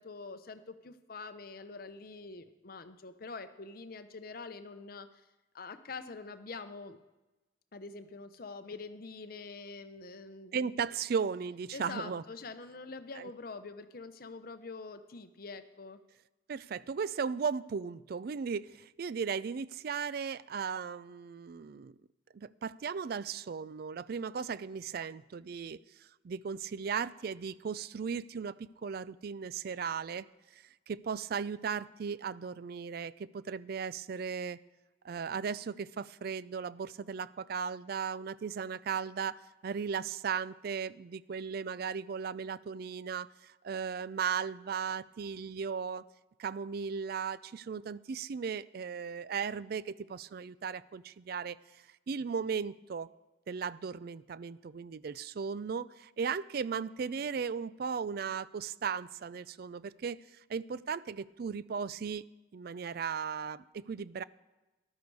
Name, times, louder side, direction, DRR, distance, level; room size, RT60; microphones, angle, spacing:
voice 1, 0.0-5.1 5.5-7.0 7.7-10.7 11.7-16.0, left 4 dB, 50° left, 10 dB, 0.8 m, -45 dB
voice 2, 10.5-12.2 13.2-13.3 16.5-21.9 22.3-30.3 30.5-34.6 35.0-46.0 46.4-53.1 53.5-62.2 62.5-64.2, right 6 dB, 50° right, 19 dB, 0.4 m, -36 dB
13.5 x 12.0 x 4.7 m, 1.1 s
head